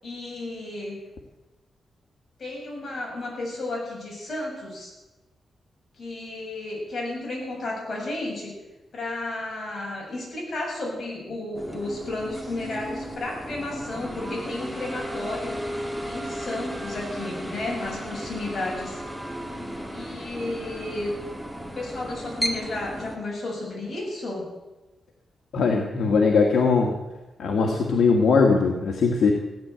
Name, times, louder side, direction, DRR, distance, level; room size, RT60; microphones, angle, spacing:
voice 1, 0.0-1.0 2.4-4.9 5.9-8.5 8.9-15.6 16.1-19.0 19.9-21.2 21.7-24.5, left 2 dB, 45° left, -2 dB, 7.7 m, -32 dB
sound 1, 11.6-23.2, equal, ahead, 2.0 m, -34 dB
voice 2, 25.5-27.0 27.4-29.3, left 4 dB, 75° left, 1 dB, 1.8 m, -20 dB
16.0 x 10.5 x 7.9 m, 1.1 s
cardioid pair, 105°, 0 cm